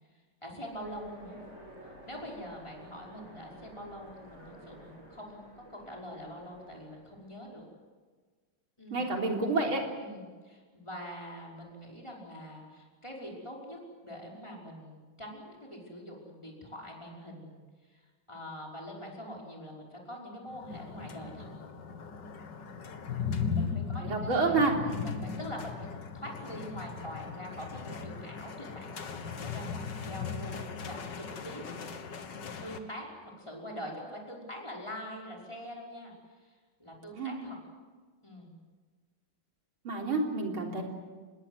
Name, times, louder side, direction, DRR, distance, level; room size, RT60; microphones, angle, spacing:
voice 1, 0.4-1.4 2.1-7.7 8.8-9.0 10.0-17.6 17.9-21.5 23.5-24.6 24.8-31.6 32.6-37.6 38.2-38.5, equal, 10° left, -2 dB, 5.6 m, -44 dB
Train, 0.7-7.6, equal, 30° right, 8.1 m, -53 dB
voice 2, 8.9-9.8 23.6-24.7 37.2-37.4 39.8-40.8, right 3 dB, 70° right, 0 dB, 4.5 m, -29 dB
sound 1, 20.5-32.8, left 6 dB, 55° left, 2.2 m, -38 dB
26.0 x 21.0 x 8.2 m, 1.5 s
omnidirectional pair, 2.4 m